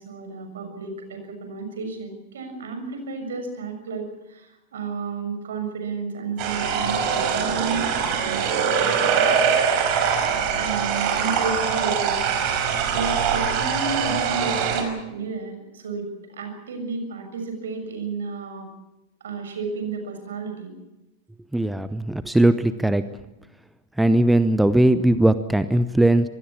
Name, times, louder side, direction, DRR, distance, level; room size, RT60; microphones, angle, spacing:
voice 1, 0.0-8.6 10.6-18.7 19.2-20.7, right 4 dB, 65° right, 6 dB, 6.8 m, -32 dB
sound 1, 6.4-14.8, right 7 dB, 40° right, 4.8 m, -23 dB
voice 2, 21.5-23.0 24.0-26.3, right 1 dB, 5° right, 13 dB, 0.9 m, -19 dB
25.5 x 19.5 x 7.3 m, 0.97 s
figure-of-eight pair, 90°, 0 cm